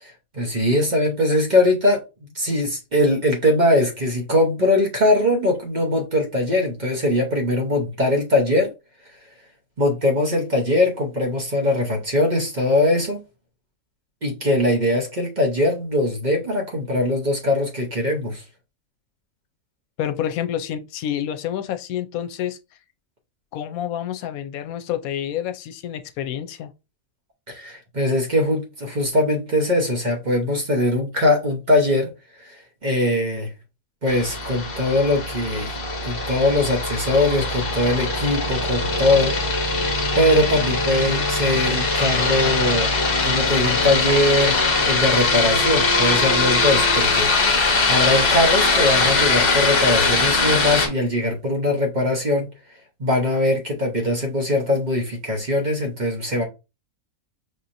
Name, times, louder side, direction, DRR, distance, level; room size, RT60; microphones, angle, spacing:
voice 1, 0.0-2.0 2.3-8.7 9.8-13.2 14.2-18.4 27.5-32.1 32.4-33.5 34.0-35.8 36.0-39.3 39.6-39.8 40.1-42.9 43.2-52.5 53.0-56.4, left 1 dB, 40° right, 0.9 m, -21 dB
voice 2, 20.0-22.6 23.5-26.7, left 10 dB, 85° left, 1.0 m, -28 dB
sound 1, 34.1-50.9, left 3 dB, 45° left, 1.1 m, -21 dB
5.3 x 2.9 x 2.5 m
omnidirectional pair, 1.5 m